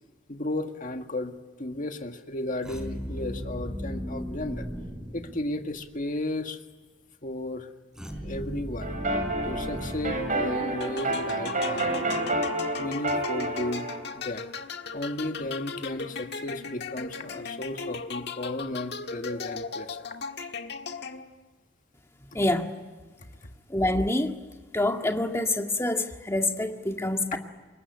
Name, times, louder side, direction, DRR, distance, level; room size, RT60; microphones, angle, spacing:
voice 1, 0.3-4.7 5.1-6.6 7.2-7.7 8.2-8.9 9.4-12.0 12.8-13.9 14.1-14.5 14.9-20.1 22.3-22.4 23.2-23.3 27.3-27.4, left 1 dB, 45° left, 6 dB, 1.8 m, -34 dB
sound 1, 2.6-5.9 7.9-11.2, equal, 5° right, 4.0 m, -37 dB
sound 2, 8.8-14.0, right 1 dB, 40° right, 6.9 m, -29 dB
sound 3, 10.8-21.5, left 5 dB, 60° left, 1.5 m, -37 dB
voice 2, 22.3-22.7 23.7-24.4 24.7-27.4, left 1 dB, 15° left, 4 dB, 1.8 m, -26 dB
26.5 x 22.0 x 9.8 m, 1.3 s
head